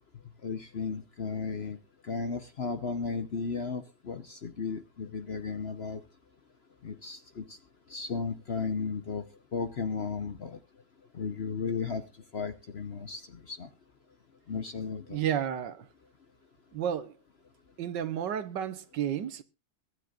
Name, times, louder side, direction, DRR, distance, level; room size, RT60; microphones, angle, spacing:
voice 1, 0.4-1.8 2.0-6.0 6.8-7.6 7.9-9.2 9.5-10.6 11.1-12.0 12.3-13.7 14.5-15.2, left 5 dB, 45° left, 0.9 m, -34 dB
voice 2, 15.1-15.9 16.7-17.1 17.8-19.4, right 9 dB, 80° right, 1.7 m, -32 dB
22.5 x 9.9 x 2.4 m
omnidirectional pair, 1.9 m